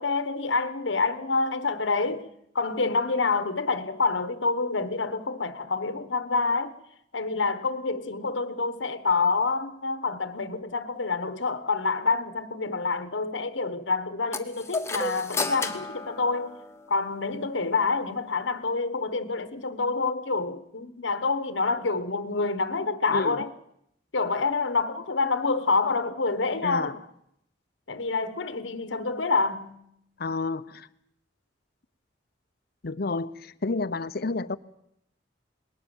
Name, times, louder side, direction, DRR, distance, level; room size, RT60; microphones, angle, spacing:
voice 1, 0.0-2.3 2.5-6.8 7.1-16.6 16.9-23.5 24.1-27.0 27.9-29.8, left 4 dB, 85° left, 1.2 m, -27 dB
sound 1, 14.3-17.0, left 3 dB, 15° left, 1.3 m, -32 dB
voice 2, 23.1-23.4 26.6-27.0 30.2-30.9 32.8-34.6, left 3 dB, 55° left, 0.7 m, -30 dB
20.5 x 18.5 x 7.2 m
head